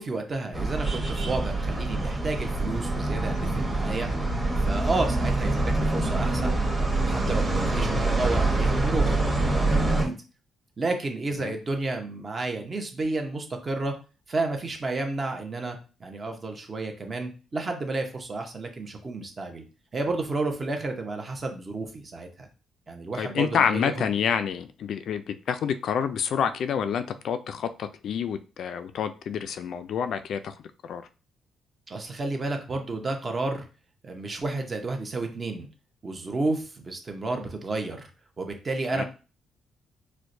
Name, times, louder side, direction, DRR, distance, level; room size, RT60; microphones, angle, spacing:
voice 1, 0.0-4.1 4.6-6.6 7.0-9.2 9.5-10.2 10.8-14.0 14.3-19.6 19.9-22.5 22.9-23.9 31.9-33.7 34.0-35.7 36.0-38.1 38.4-39.0, right 3 dB, 35° right, 4 dB, 0.8 m, -31 dB
sound 1, 0.5-10.0, right 2 dB, 15° right, 1.0 m, -25 dB
voice 2, 23.2-30.5 30.8-31.1 38.9-39.0, left 7 dB, 65° left, 10 dB, 0.3 m, -28 dB
4.4 x 2.1 x 2.6 m, 0.34 s
cardioid pair, 90°, 0 cm